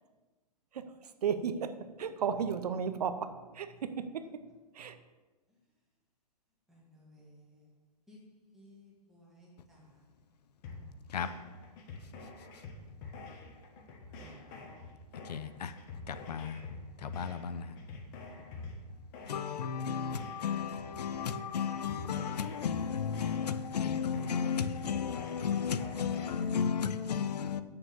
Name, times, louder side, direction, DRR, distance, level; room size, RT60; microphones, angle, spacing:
voice 1, 0.7-1.7 2.0-4.2 4.7-5.0, right 7 dB, 70° right, 0.9 m, -34 dB
voice 2, 6.7-7.7 8.1-8.2 8.5-9.9 14.2-14.6, left 1 dB, ahead, 1.9 m, -58 dB
sound 1, 10.6-26.6, left 3 dB, 30° left, 1.2 m, -47 dB
voice 3, 15.3-15.7 16.1-16.6 17.0-17.7 19.3-27.6, left 7 dB, 75° left, 0.7 m, -33 dB
7.0 x 6.6 x 7.1 m
hypercardioid pair, 165°, 21 cm